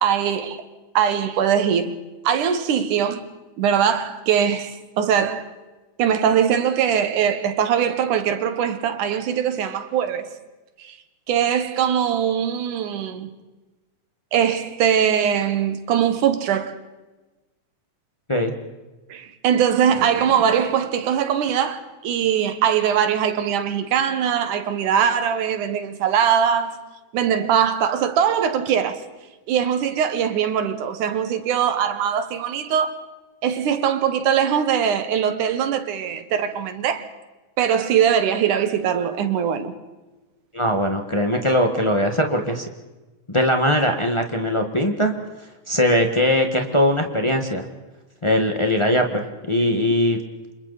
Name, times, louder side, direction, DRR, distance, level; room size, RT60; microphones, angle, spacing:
voice 1, 0.0-0.6 0.9-1.9 2.2-3.3 3.6-5.5 6.0-10.3 10.8-11.0 11.3-13.3 14.3-16.8 19.1-26.8 27.1-29.0 29.5-32.9 33.4-37.1 37.6-39.7, right 8 dB, 85° right, 2.9 m, -21 dB
voice 2, 40.5-42.7 43.3-45.1 45.7-47.6 48.2-50.2, equal, 40° left, 0.4 m, -20 dB
29.5 x 26.5 x 4.1 m
omnidirectional pair, 3.5 m